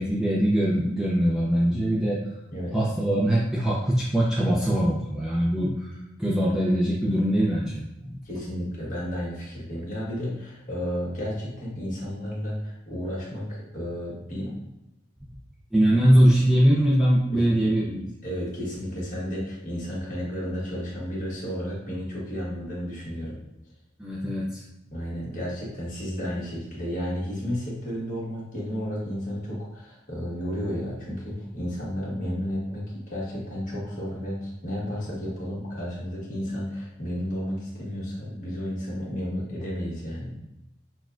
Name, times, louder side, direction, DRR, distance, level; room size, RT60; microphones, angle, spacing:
voice 1, 0.0-2.4 2.7-5.9 6.2-8.2 15.7-18.0 24.0-24.6, equal, 5° right, -6 dB, 0.5 m, -22 dB
voice 2, 8.2-14.6 17.3-23.4 24.9-40.3, equal, 40° left, -6 dB, 1.5 m, -32 dB
6.2 x 2.3 x 2.5 m, 0.93 s
head